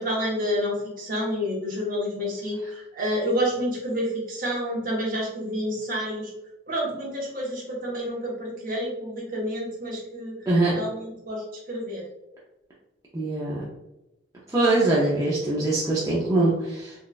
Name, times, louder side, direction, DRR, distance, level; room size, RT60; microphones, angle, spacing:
voice 1, 0.0-6.3 6.7-10.4 10.7-12.1, equal, 45° right, -4 dB, 1.0 m, -29 dB
voice 2, 10.5-10.8 13.1-13.6 14.5-16.9, right 2 dB, 15° right, -7 dB, 0.5 m, -22 dB
4.0 x 2.3 x 2.3 m, 0.94 s
head